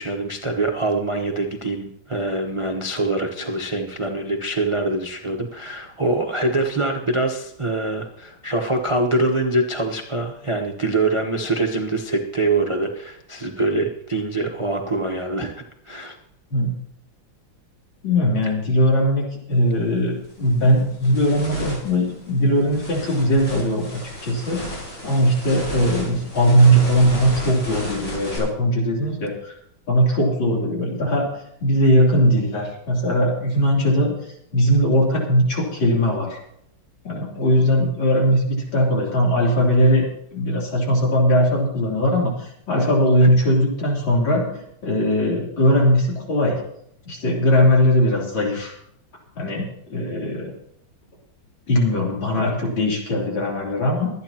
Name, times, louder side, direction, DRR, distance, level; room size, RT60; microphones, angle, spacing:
voice 1, 0.0-15.5 15.8-16.1 43.2-43.3, right 2 dB, 30° right, 3 dB, 0.6 m, -24 dB
voice 2, 18.0-29.5 29.9-31.2 31.6-34.1 34.5-36.4 37.0-40.0 40.3-44.5 44.8-46.6 47.1-48.7 49.4-50.5 51.7-54.1, equal, 70° left, -2 dB, 4.1 m, -19 dB
sound 1, 19.5-19.7 20.2-28.4, equal, 40° left, 5.9 m, -33 dB
24.0 x 9.5 x 2.9 m, 0.73 s
omnidirectional pair, 2.2 m